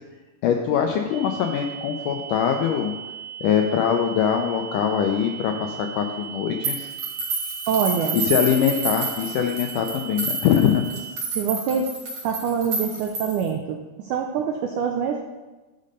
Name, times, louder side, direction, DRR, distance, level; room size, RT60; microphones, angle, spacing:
voice 1, 0.4-2.9 3.4-6.9 8.1-10.9, left 8 dB, 85° left, 4 dB, 1.8 m, -22 dB
sound 1, 1.1-11.1, right 8 dB, 25° right, 3.5 m, -38 dB
sound 2, 6.6-13.5, right 3 dB, 45° right, 2.8 m, -29 dB
voice 2, 7.7-8.2 11.3-11.9 12.2-15.2, right 7 dB, 85° right, 3 dB, 1.8 m, -25 dB
11.5 x 5.4 x 5.4 m, 1.2 s
omnidirectional pair, 4.4 m